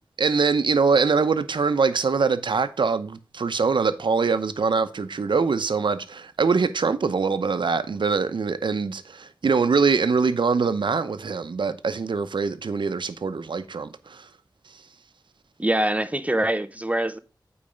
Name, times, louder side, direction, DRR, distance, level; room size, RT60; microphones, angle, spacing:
voice 1, 0.2-14.3, right 5 dB, 85° right, 0.7 m, -23 dB
voice 2, 15.6-17.2, right 1 dB, 15° right, 0.5 m, -24 dB
8.7 x 4.8 x 5.1 m
wide cardioid pair, 90°, 8 cm